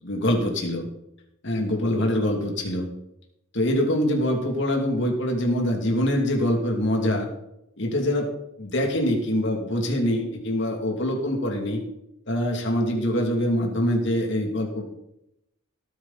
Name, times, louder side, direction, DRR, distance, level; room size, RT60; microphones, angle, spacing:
voice 1, 0.0-0.9 1.4-2.9 3.5-7.3 7.8-8.3 8.6-11.8 12.3-14.8, left 1 dB, 55° left, 1 dB, 2.8 m, -24 dB
18.0 x 9.7 x 4.2 m, 0.83 s
head